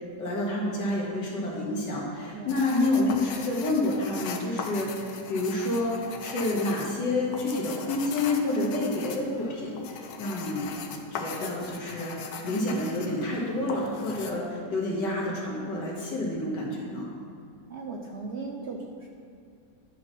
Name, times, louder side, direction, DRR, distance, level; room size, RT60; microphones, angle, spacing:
voice 1, 0.2-10.7 11.1-12.2 12.4-17.1, left 2 dB, 80° left, -3 dB, 2.3 m, -29 dB
sound 1, 2.5-14.3, left 5 dB, 65° left, 1.2 m, -39 dB
voice 2, 17.7-19.1, right 4 dB, 60° right, 0 dB, 0.7 m, -36 dB
10.5 x 4.4 x 6.0 m, 2.4 s
omnidirectional pair, 1.9 m